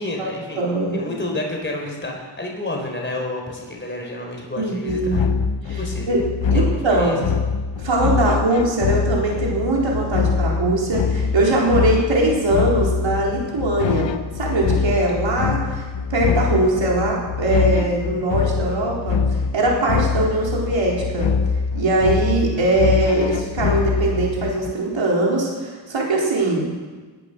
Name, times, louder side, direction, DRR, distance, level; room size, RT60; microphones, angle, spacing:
voice 1, 0.0-0.6 0.9-5.2 5.7-6.1 6.5-7.2, left 2 dB, 25° left, 0 dB, 4.0 m, -30 dB
voice 2, 0.6-1.1 4.6-5.2 5.7-5.8 6.1-6.2 6.5-7.2 7.8-15.8 16.1-21.3 21.7-26.8, right 2 dB, 80° right, -3 dB, 4.3 m, -21 dB
sound 1, 4.9-24.7, left 5 dB, 75° left, 0.9 m, -24 dB
20.0 x 8.9 x 6.8 m, 1.3 s
wide cardioid pair, 85°, 45 cm